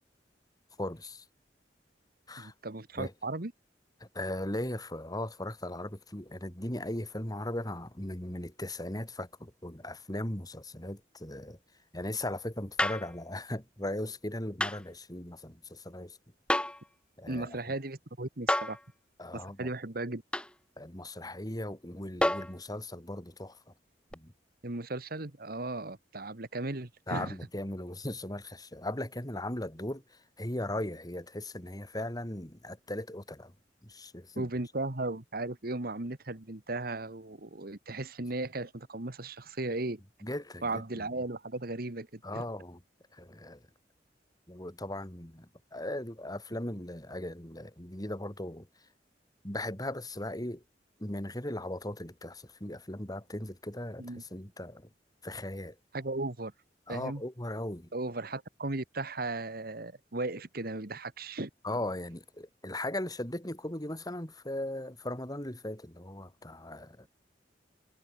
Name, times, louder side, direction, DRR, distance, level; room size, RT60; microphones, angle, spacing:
voice 1, 0.8-1.2 2.3-2.5 3.0-3.1 4.0-11.6 11.9-16.2 17.2-17.5 19.2-19.7 20.8-23.6 24.1-24.3 27.1-33.5 33.8-34.5 40.2-41.1 42.2-42.8 43.1-43.6 44.5-48.7 49.4-50.6 51.0-54.9 55.2-55.8 56.9-57.9 61.6-67.1, left 1 dB, 20° left, 4.1 m, -38 dB
voice 2, 2.4-3.5 17.3-18.8 19.3-20.2 24.6-27.3 34.3-40.0 40.6-42.4 54.0-54.2 55.9-56.5 56.9-57.2 57.9-61.5, right 2 dB, 60° right, 1.8 m, -36 dB
sound 1, 12.8-13.1 14.6-14.8 16.5-16.8 18.5-18.8 20.3-20.5 22.2-22.6 24.1-24.2, left 1 dB, 5° left, 1.4 m, -29 dB
head